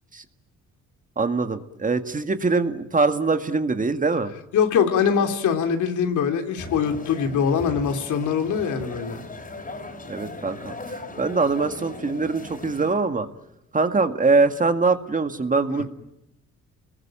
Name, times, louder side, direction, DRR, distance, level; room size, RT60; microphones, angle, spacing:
voice 1, 1.2-4.3 10.1-13.3 13.7-15.8, right 3 dB, 25° right, 1.9 m, -23 dB
voice 2, 4.5-9.2, left 7 dB, 75° left, 3.2 m, -23 dB
sound 1, 6.6-12.9, left 2 dB, 30° left, 5.3 m, -38 dB
29.0 x 21.0 x 8.9 m
cardioid pair, 90°, 30 cm